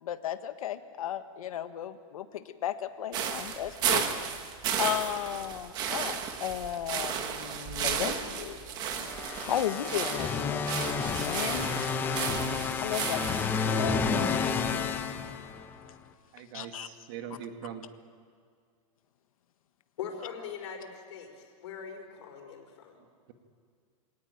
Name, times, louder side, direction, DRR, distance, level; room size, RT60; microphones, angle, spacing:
voice 1, 0.0-4.1 4.8-8.6 8.9-9.1 9.4-11.7 12.8-14.6 15.2-15.3 16.5-16.9, left 10 dB, 90° left, 9 dB, 1.6 m, -35 dB
sound 1, 3.1-13.5, right 8 dB, 25° right, 1.3 m, -33 dB
sound 2, 9.0-15.9, left 5 dB, 10° left, 0.9 m, -31 dB
voice 2, 16.3-17.9, right 9 dB, 40° right, 6 dB, 2.1 m, -42 dB
voice 3, 20.0-23.0, left 7 dB, 55° left, 3 dB, 4.7 m, -41 dB
26.5 x 18.0 x 9.3 m, 2.1 s
supercardioid pair, 180°, 18 cm